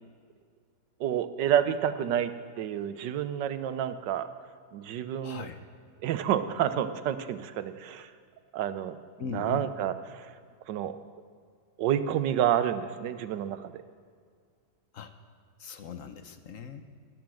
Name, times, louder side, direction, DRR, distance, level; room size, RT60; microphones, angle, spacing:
voice 1, 1.0-2.3 2.6-4.3 4.7-5.5 6.0-8.1 8.5-9.0 9.3-10.3 10.7-11.0 11.8-13.8, right 10 dB, 90° right, 12 dB, 1.4 m, -29 dB
voice 2, 5.2-5.6 9.2-9.7 14.9-15.1 15.6-16.8, left 6 dB, 55° left, 9 dB, 1.1 m, -39 dB
14.0 x 12.0 x 7.6 m, 2.1 s
omnidirectional pair, 1.8 m